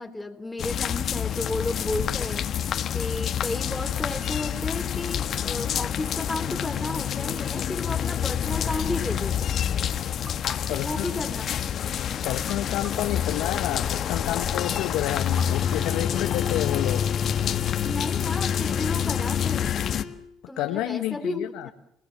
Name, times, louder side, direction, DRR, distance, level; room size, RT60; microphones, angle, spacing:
voice 1, 0.0-2.5 2.9-9.8 10.7-11.8 17.8-19.8 20.5-21.7, left 2 dB, 10° left, 5 dB, 3.3 m, -33 dB
sound 1, 0.6-20.0, left 9 dB, 55° left, 1.3 m, -27 dB
sound 2, 10.2-11.8 12.5-14.1 15.4-16.7, right 2 dB, 35° right, 6.1 m, -50 dB
voice 2, 10.7-11.1 12.2-17.1 20.6-21.7, left 14 dB, 80° left, 7 dB, 1.1 m, -30 dB
sound 3, 15.3-20.3, left 6 dB, 40° left, 3.0 m, -37 dB
29.5 x 18.5 x 7.5 m, 0.76 s
supercardioid pair, 75°, 0 cm